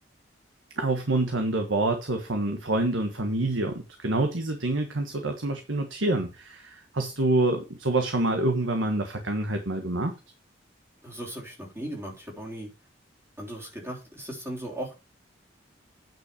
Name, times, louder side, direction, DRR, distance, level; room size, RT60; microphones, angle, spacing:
voice 1, 0.8-10.1, right 2 dB, 90° right, 1.5 m, -27 dB
voice 2, 11.0-12.7 13.4-15.0, right 1 dB, 15° right, 3.5 m, -37 dB
9.4 x 6.0 x 5.0 m
head